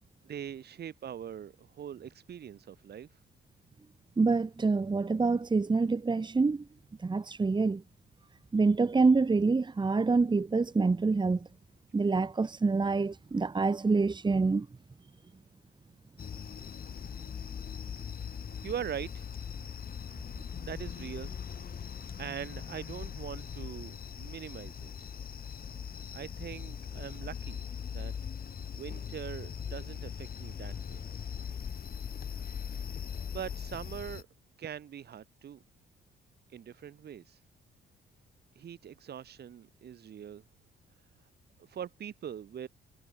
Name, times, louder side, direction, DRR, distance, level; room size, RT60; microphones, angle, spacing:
voice 1, 0.2-3.1 18.6-19.3 20.6-21.3 22.2-25.1 25.9-27.6 27.9-28.1 28.7-31.0 33.3-34.3 34.6-35.6 36.5-37.4 38.5-40.4 41.6-42.7, right 9 dB, 55° right, 1.5 m, -42 dB
voice 2, 4.2-6.6 7.0-7.8 8.5-11.5 11.9-14.7, right 4 dB, 20° right, 1.5 m, -26 dB
sound 1, 16.2-34.2, left 7 dB, 50° left, 4.1 m, -40 dB
cardioid pair, 90°, 20 cm